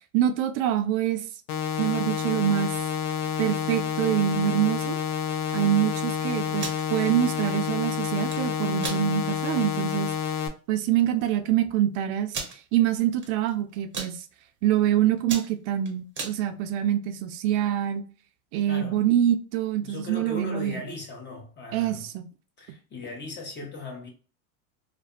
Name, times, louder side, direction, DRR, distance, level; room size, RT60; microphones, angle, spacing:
voice 1, 0.1-1.2 1.8-2.7 3.4-5.0 5.5-10.1 10.7-14.3 14.6-18.0 18.5-20.8 21.7-22.3, right 11 dB, 65° right, 0.5 m, -25 dB
sound 1, 1.5-10.5, left 8 dB, 90° left, 0.6 m, -29 dB
sound 2, 6.4-6.8 8.1-8.4 8.8-9.0 9.5-9.6 10.0-10.2 11.0-11.1 11.3-11.4 12.3-12.6 13.2-13.5 13.8-14.1 14.7-14.9 15.2-16.4, right 4 dB, 25° right, 0.7 m, -34 dB
voice 2, 18.7-19.0 19.8-22.1 22.6-24.1, left 2 dB, 25° left, 0.8 m, -38 dB
2.4 x 2.3 x 2.3 m
supercardioid pair, 115°, 44 cm